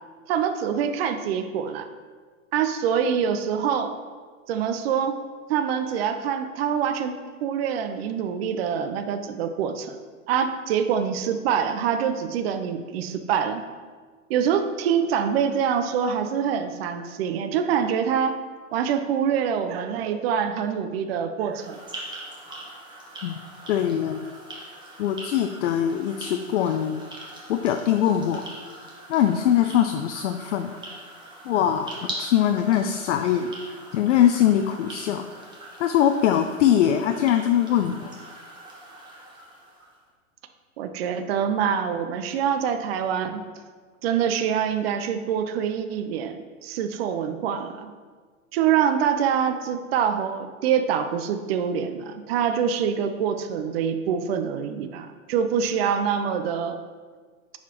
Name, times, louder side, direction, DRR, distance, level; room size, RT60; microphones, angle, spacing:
voice 1, 0.3-1.9 2.5-3.9 4.5-5.1 5.5-10.0 10.3-13.6 14.3-18.4 18.7-21.8 40.8-43.4 44.0-47.9 48.5-56.8, right 8 dB, 45° right, 8 dB, 0.6 m, -25 dB
sound 1, 21.5-40.0, right 1 dB, 10° right, 1.3 m, -42 dB
voice 2, 23.7-24.2 25.0-27.0 27.5-28.5 29.1-30.7 31.4-35.5 35.8-38.1, left 10 dB, 60° left, 6 dB, 0.5 m, -22 dB
9.6 x 4.2 x 2.9 m, 1.5 s
hypercardioid pair, 115°, 42 cm